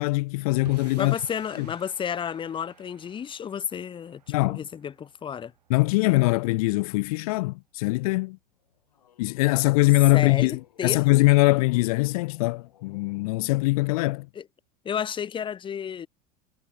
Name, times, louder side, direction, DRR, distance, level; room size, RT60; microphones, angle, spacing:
voice 1, 0.0-1.2 1.6-1.7 4.3-4.6 5.7-8.4 9.2-14.3, left 23 dB, 65° left, 0.5 m, -22 dB
sound 1, 0.6-7.0, right 9 dB, 85° right, 3.1 m, -52 dB
voice 2, 0.9-5.5 10.1-11.0 14.4-14.5 14.8-16.1, left 8 dB, 25° left, 0.7 m, -32 dB
sound 2, 8.5-13.4, left 10 dB, 80° left, 3.2 m, -57 dB
hypercardioid pair, 80°, 20 cm